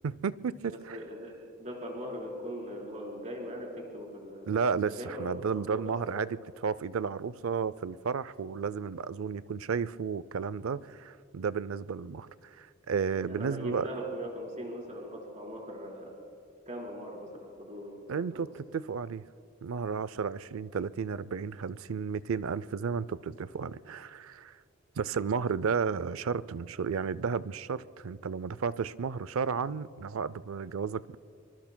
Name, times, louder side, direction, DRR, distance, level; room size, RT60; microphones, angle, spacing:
voice 1, 0.0-1.0 4.5-6.3 6.6-12.3 12.6-13.9 18.1-18.5 18.7-19.2 19.6-24.5 25.0-31.2, right 6 dB, 80° right, 0.4 m, -33 dB
voice 2, 0.7-1.3 1.6-4.5 4.9-6.0 13.3-16.1 16.7-18.5, equal, 35° right, 4.1 m, -40 dB
25.0 x 24.5 x 2.2 m
head